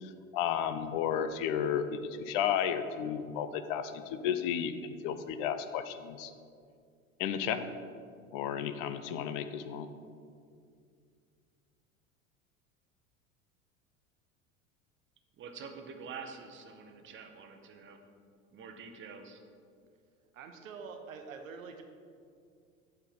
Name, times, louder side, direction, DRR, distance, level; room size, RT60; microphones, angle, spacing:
voice 1, 0.0-6.3 7.2-7.7 8.3-9.9, left 8 dB, 45° left, 10 dB, 0.5 m, -33 dB
voice 2, 15.4-18.0 18.5-19.4, right 5 dB, 30° right, 5 dB, 0.9 m, -46 dB
voice 3, 20.3-21.8, right 5 dB, 75° right, 5 dB, 1.0 m, -45 dB
8.2 x 3.6 x 6.1 m, 2.3 s
figure-of-eight pair, 80°, 41 cm